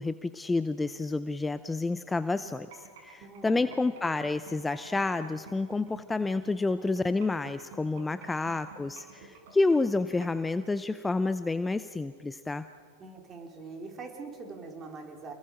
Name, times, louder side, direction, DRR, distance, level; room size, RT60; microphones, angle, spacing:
voice 1, 0.0-12.7, left 3 dB, 10° left, 12 dB, 0.6 m, -29 dB
sound 1, 2.5-10.4, right 6 dB, 65° right, 6.1 m, -50 dB
voice 2, 3.2-3.8 13.0-15.3, right 4 dB, 25° right, 2 dB, 4.5 m, -43 dB
29.0 x 21.0 x 5.1 m, 2.1 s
hypercardioid pair, 95°, 0 cm